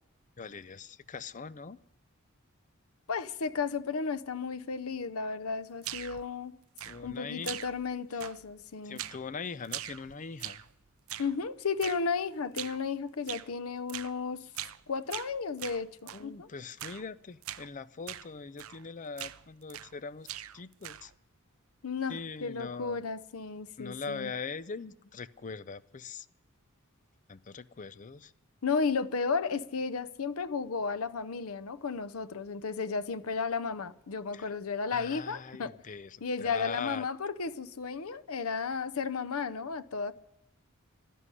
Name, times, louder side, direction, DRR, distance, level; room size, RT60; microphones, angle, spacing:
voice 1, 0.4-1.8 6.8-7.6 8.1-8.2 8.8-10.6 16.1-20.3 20.5-21.1 22.1-23.0 23.8-26.3 27.3-28.3 34.3-34.5 34.9-37.1, left 5 dB, 35° left, 0.5 m, -41 dB
voice 2, 3.1-6.5 7.0-9.0 11.2-14.4 14.9-16.5 21.8-24.3 28.6-35.7 36.2-40.1, left 5 dB, 85° left, 0.7 m, -33 dB
sound 1, 5.8-6.3 6.8-7.2 7.5-7.9 8.2-8.6 9.0-9.3 9.6-10.7 11.1-11.4 11.8-12.1 12.6-12.8 13.3-13.5 13.9-14.2 14.5-14.8 15.1-16.3 16.8-17.1 17.4-17.7 18.1-18.3 18.6-18.9 19.2-20.0 20.3-21.1, right 13 dB, 75° right, 0.6 m, -41 dB
12.5 x 11.0 x 9.8 m
head